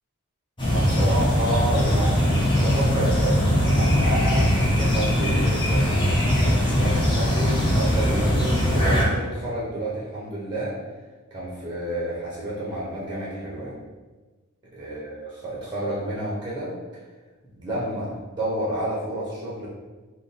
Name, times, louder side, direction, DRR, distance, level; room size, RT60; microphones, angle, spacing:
sound 1, 0.6-9.0, equal, 25° left, 0.9 m, -21 dB
voice 1, 0.7-10.8 11.3-13.8 14.7-17.0 17.4-19.7, right 1 dB, 20° right, -7 dB, 0.7 m, -30 dB
3.5 x 2.2 x 4.1 m, 1.3 s
head